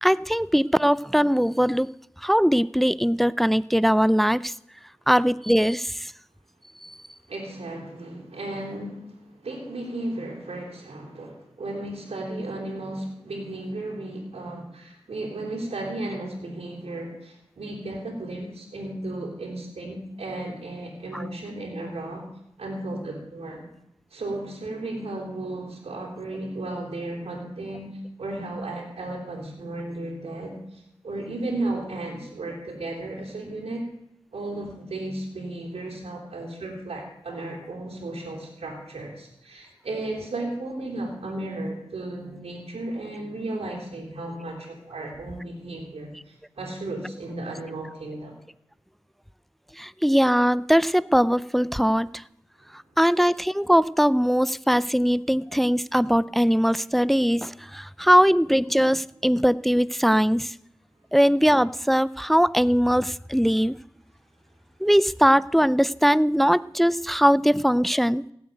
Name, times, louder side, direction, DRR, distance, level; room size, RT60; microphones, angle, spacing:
voice 1, 0.0-1.9 2.2-4.5 5.1-6.1 6.8-6.9 49.8-52.2 53.0-60.5 61.1-63.7 64.8-68.2, equal, ahead, 19 dB, 0.5 m, -21 dB
voice 2, 7.3-22.3 22.6-23.7 24.1-27.9 28.2-33.9 34.3-48.3, right 2 dB, 85° right, -2 dB, 3.6 m, -34 dB
17.0 x 7.9 x 9.2 m, 0.78 s
cardioid pair, 50°, 10 cm